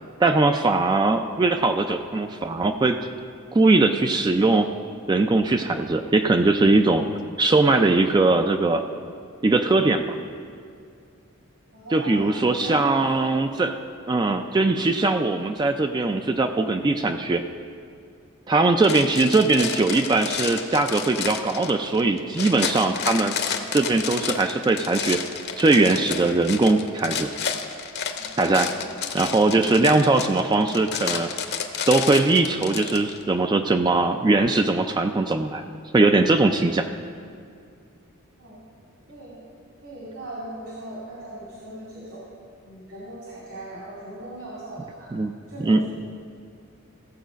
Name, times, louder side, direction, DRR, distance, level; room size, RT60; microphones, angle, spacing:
voice 1, 0.2-3.0 3.5-4.7 5.1-7.1 7.4-8.8 9.4-10.2 11.9-13.8 14.1-17.4 18.5-23.4 23.7-25.2 25.6-27.3 28.4-28.7 29.1-31.3 31.9-35.6 35.9-36.9 45.1-45.3 45.6-45.8, right 3 dB, 20° right, 6 dB, 0.3 m, -20 dB
voice 2, 11.7-13.2 28.1-28.2 28.7-28.8 38.4-38.6 39.1-39.4 39.8-42.2 42.6-45.1 45.5-45.8, right 1 dB, 65° right, -6 dB, 2.3 m, -38 dB
sound 1, 18.8-33.2, left 7 dB, 50° left, 0.8 m, -31 dB
15.0 x 7.2 x 5.1 m, 2.3 s
head